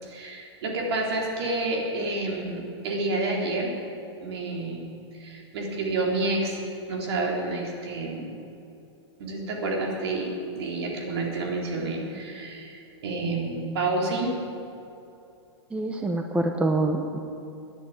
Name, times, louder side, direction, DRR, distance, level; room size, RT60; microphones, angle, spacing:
voice 1, 0.0-3.7 4.2-4.9 5.1-6.6 6.9-8.3 9.2-14.4, right 2 dB, 65° right, -1 dB, 3.6 m, -29 dB
voice 2, 15.7-17.2, right 2 dB, 10° right, 4 dB, 0.8 m, -25 dB
11.5 x 10.0 x 8.6 m, 2.8 s
hypercardioid pair, 130°, 15 cm